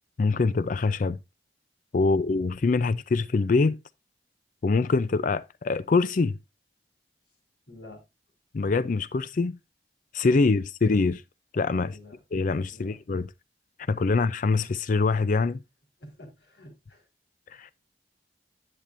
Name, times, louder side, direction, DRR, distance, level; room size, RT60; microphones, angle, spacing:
voice 1, 0.2-1.2 1.9-3.8 4.6-6.3 8.5-9.5 10.1-11.2 11.5-12.0 12.3-13.3 13.9-15.6 17.6-17.7, left 3 dB, 45° left, 0.4 m, -24 dB
voice 2, 7.7-8.0 10.4-10.6 11.8-12.2 12.7-13.0 16.0-17.1, left 1 dB, 70° left, 5.0 m, -49 dB
10.5 x 8.3 x 2.6 m
head